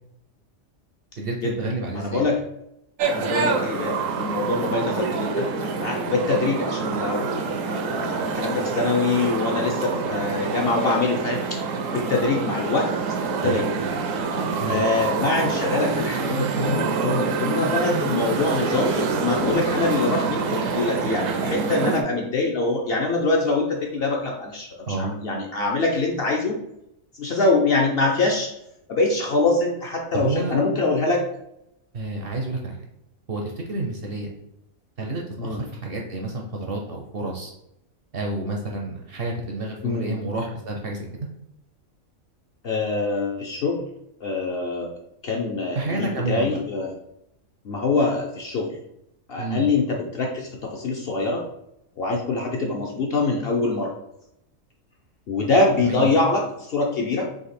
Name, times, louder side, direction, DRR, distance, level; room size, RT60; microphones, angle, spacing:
voice 1, 1.2-2.2 13.4-13.6 14.6-14.8 24.9-25.1 30.1-30.6 31.9-32.8 33.3-34.3 35.0-37.5 38.1-41.3 45.7-46.6 49.4-49.6 55.8-56.1, right 2 dB, 55° right, 0 dB, 0.7 m, -29 dB
voice 2, 1.9-2.4 3.1-11.6 11.9-12.9 13.4-13.7 14.6-24.7 25.0-26.6 27.2-28.5 28.9-31.2 35.4-35.6 39.8-40.2 42.6-43.8 44.2-44.9 45.2-46.9 47.6-48.8 49.3-51.4 52.0-53.9 55.3-57.3, left 3 dB, 60° left, 0 dB, 0.7 m, -24 dB
sound 1, 3.0-22.0, right 4 dB, 70° right, 1.0 m, -26 dB
3.9 x 2.8 x 4.1 m, 0.81 s
omnidirectional pair, 1.4 m